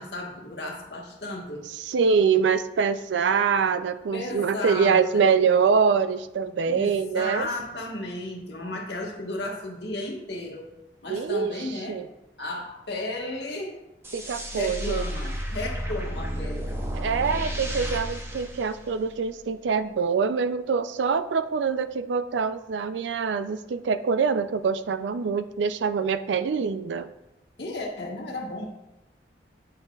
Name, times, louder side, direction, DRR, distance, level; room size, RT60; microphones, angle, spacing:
voice 1, 0.0-1.6 4.1-5.2 6.7-10.7 11.0-12.0 12.4-13.8 14.5-16.9 27.6-28.7, left 1 dB, 65° left, -1 dB, 1.4 m, -34 dB
voice 2, 1.7-7.5 11.1-12.1 14.1-15.1 16.9-27.1, right 5 dB, 80° right, 12 dB, 0.4 m, -24 dB
sound 1, 14.0-19.4, equal, 15° right, 0.7 m, -32 dB
8.7 x 6.5 x 2.3 m, 0.93 s
head